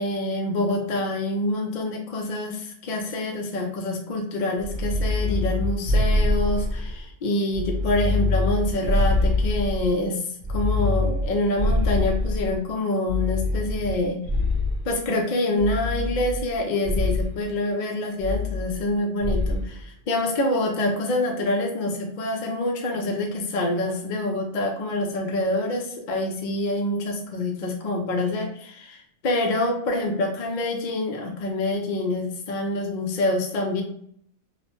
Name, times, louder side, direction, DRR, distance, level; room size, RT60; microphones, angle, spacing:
voice 1, 0.0-10.2 10.5-14.2 14.8-33.8, left 1 dB, 60° left, 2 dB, 0.5 m, -26 dB
sound 1, 4.6-7.0 7.5-9.9 10.4-12.6 13.1-14.9 15.6-16.5 16.8-17.3 18.2-18.9 19.2-19.7, left 2 dB, 45° right, 0.8 m, -24 dB
3.0 x 2.1 x 2.9 m, 0.67 s
omnidirectional pair, 1.5 m